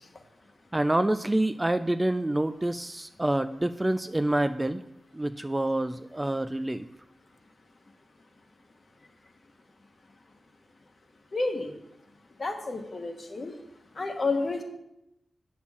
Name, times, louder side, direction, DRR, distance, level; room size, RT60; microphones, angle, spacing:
voice 1, 0.7-4.8 5.1-6.8, right 1 dB, 15° right, 11 dB, 0.3 m, -27 dB
voice 2, 11.3-11.7 12.4-13.5 14.0-14.6, left 3 dB, 45° left, 4 dB, 1.3 m, -30 dB
8.5 x 4.3 x 7.1 m, 0.85 s
wide cardioid pair, 80°, 0 cm